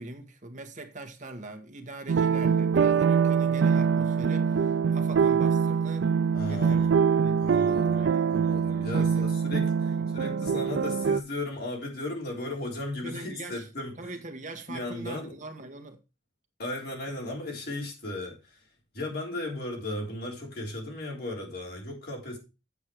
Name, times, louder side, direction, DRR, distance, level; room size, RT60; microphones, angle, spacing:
voice 1, 0.0-6.1 6.4-6.8 7.2-8.4 8.9-9.2 10.0-10.2 13.0-13.7 14.0-16.0, right 2 dB, 45° right, 1.4 m, -42 dB
sound 1, 2.1-11.2, right 6 dB, 70° right, 0.4 m, -24 dB
voice 2, 6.3-6.9 7.4-13.9 14.7-15.3 16.6-18.6 18.9-22.4, left 1 dB, 60° left, 3.5 m, -36 dB
8.4 x 7.4 x 4.6 m
head